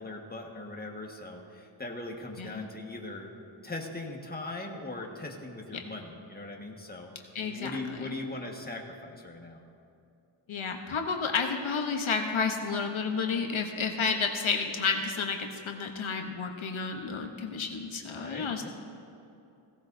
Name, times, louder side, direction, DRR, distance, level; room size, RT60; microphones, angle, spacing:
voice 1, 0.0-3.3 3.6-9.6 18.0-18.7, left 2 dB, 20° left, 0 dB, 1.5 m, -40 dB
voice 2, 7.3-7.7 10.5-18.6, left 5 dB, 75° left, 3 dB, 1.0 m, -31 dB
17.0 x 17.0 x 2.7 m, 2.6 s
wide cardioid pair, 90°, 48 cm